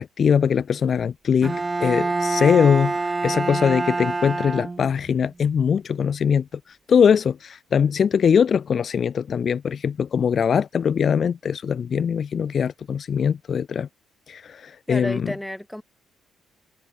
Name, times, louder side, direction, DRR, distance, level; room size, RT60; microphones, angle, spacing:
voice 1, 0.0-13.9 14.3-15.3, left 7 dB, 50° left, 1.0 m, -21 dB
Bowed string instrument, 1.4-5.2, right 3 dB, 25° right, 2.9 m, -26 dB
voice 2, 14.9-15.8, left 1 dB, 5° left, 5.8 m, -31 dB
cardioid pair, 90°, 0 cm